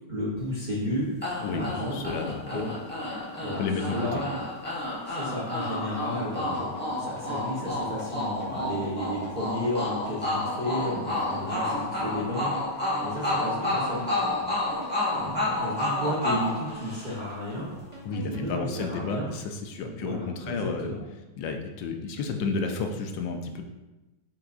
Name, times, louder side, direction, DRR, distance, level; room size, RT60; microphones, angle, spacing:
voice 1, 0.1-1.1 1.5-2.1 2.5-2.7 3.4-3.6 3.9-4.3 4.8-12.5 13.0-14.3 14.7-14.8 15.1-17.7 18.2-19.3 19.8-21.0, equal, 85° right, -6 dB, 0.4 m, -33 dB
sound 1, 1.2-17.4, left 2 dB, 10° left, 0.6 m, -30 dB
voice 2, 1.4-2.6 3.6-4.2 18.0-20.9 21.4-23.6, left 4 dB, 80° left, 4 dB, 1.2 m, -32 dB
sound 2, 5.9-19.2, equal, 30° right, 0.5 m, -45 dB
5.8 x 3.8 x 2.4 m, 1.1 s
omnidirectional pair, 2.1 m